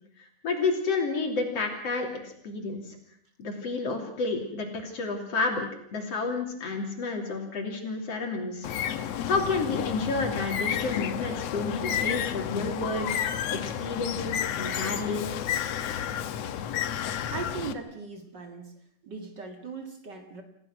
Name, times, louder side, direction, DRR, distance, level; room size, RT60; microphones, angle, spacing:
voice 1, 0.2-2.8 3.4-5.7 5.9-8.7 9.3-15.3, left 3 dB, 50° left, 2 dB, 3.9 m, -30 dB
Bird, 8.6-17.7, left 9 dB, 65° left, 1.8 m, -31 dB
voice 2, 17.3-18.7 19.0-20.4, right 5 dB, 40° right, 5 dB, 2.1 m, -38 dB
29.0 x 16.0 x 6.1 m, 0.68 s
omnidirectional pair, 3.7 m